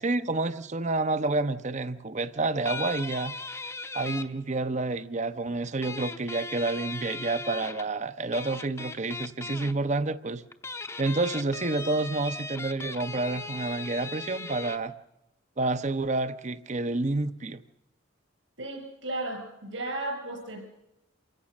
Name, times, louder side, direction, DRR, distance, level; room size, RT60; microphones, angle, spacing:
voice 1, 0.0-3.3 3.9-10.4 11.0-14.9 15.6-17.6, right 2 dB, 35° right, 0.8 m, -29 dB
sound 1, 2.7-4.3 5.8-7.9 8.3-9.7 10.5-14.8, left 3 dB, 15° left, 0.8 m, -38 dB
voice 2, 18.6-20.6, right 2 dB, 70° right, 6.2 m, -34 dB
27.5 x 16.0 x 6.5 m
head